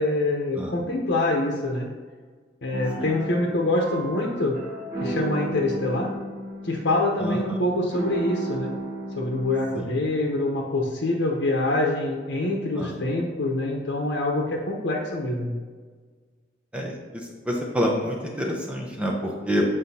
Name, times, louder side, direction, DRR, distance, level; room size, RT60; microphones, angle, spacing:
voice 1, 0.0-1.9 2.6-4.6 5.0-6.1 6.6-8.7 9.2-15.5, left 2 dB, 75° left, -1 dB, 0.8 m, -25 dB
sound 1, 2.7-9.8, right 2 dB, 40° right, 1.7 m, -34 dB
voice 2, 7.2-7.6 9.7-9.9 12.8-12.9 16.7-19.6, equal, 5° right, -1 dB, 0.7 m, -27 dB
7.7 x 4.9 x 2.8 m, 1.5 s
head